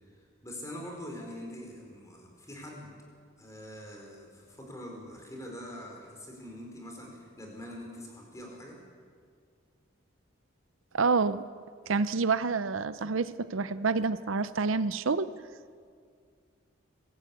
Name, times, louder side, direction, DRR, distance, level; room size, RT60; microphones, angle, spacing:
voice 1, 0.4-2.9 3.4-8.8, left 1 dB, 15° left, 0 dB, 4.6 m, -44 dB
voice 2, 10.9-11.4 11.9-15.3, right 4 dB, 80° right, 14 dB, 0.6 m, -28 dB
25.0 x 15.5 x 8.4 m, 2.1 s
head